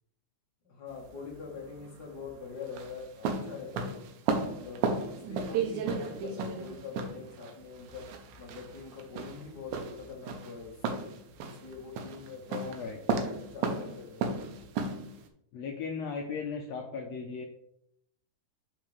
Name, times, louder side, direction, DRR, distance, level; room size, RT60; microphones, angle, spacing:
voice 1, 0.6-4.0 4.4-8.1 8.4-11.1 11.4-12.9 13.2-14.3, left 5 dB, 50° left, -1 dB, 1.3 m, -44 dB
sound 1, 0.9-15.3, right 4 dB, 90° right, 2.6 m, -35 dB
voice 2, 12.6-13.0 15.5-17.5, left 5 dB, 80° left, 1 dB, 1.5 m, -37 dB
11.0 x 4.3 x 3.3 m, 0.73 s
omnidirectional pair, 4.0 m